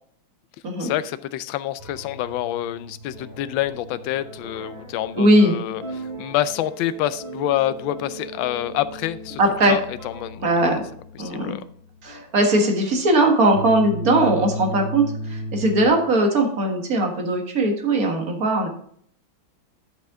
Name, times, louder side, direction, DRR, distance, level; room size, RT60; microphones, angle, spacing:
voice 1, 0.8-9.4 9.7-10.5 11.2-11.6, left 13 dB, 80° left, 14 dB, 1.3 m, -27 dB
sound 1, 1.8-15.9, equal, 80° right, 5.0 m, -36 dB
voice 2, 5.2-5.6 9.4-9.8 10.4-10.8 11.2-11.6 12.0-18.7, right 1 dB, 45° right, 2 dB, 2.0 m, -19 dB
11.5 x 5.5 x 3.7 m, 0.62 s
omnidirectional pair, 2.2 m